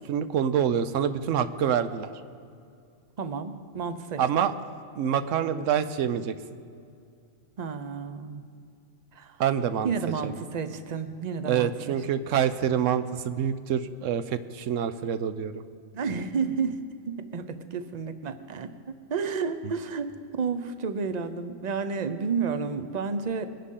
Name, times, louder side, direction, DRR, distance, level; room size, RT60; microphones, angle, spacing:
voice 1, 0.1-2.1 4.2-4.5 4.9-6.3 9.4-9.9 10.2-10.3 11.5-15.6, right 8 dB, 75° right, 12 dB, 1.0 m, -26 dB
voice 2, 3.2-4.2 7.6-8.4 9.1-9.4 9.8-12.0 15.9-23.5, right 5 dB, 40° right, 10 dB, 0.7 m, -31 dB
22.5 x 10.5 x 3.8 m, 2.4 s
omnidirectional pair, 1.4 m